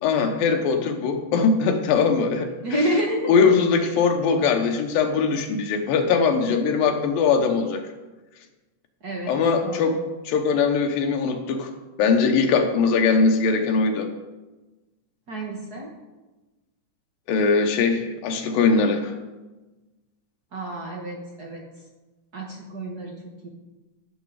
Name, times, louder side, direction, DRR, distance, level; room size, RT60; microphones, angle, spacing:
voice 1, 0.0-2.5 3.3-7.8 9.3-10.0 10.3-11.7 12.0-14.1 17.3-19.1, left 5 dB, 85° left, 5 dB, 2.9 m, -21 dB
voice 2, 2.6-3.3 9.0-9.4 9.6-10.0 15.3-15.9 20.5-21.6 22.3-23.1 23.4-23.5, right 1 dB, 55° right, -1 dB, 1.1 m, -29 dB
15.0 x 7.2 x 4.9 m, 1.1 s
omnidirectional pair, 4.0 m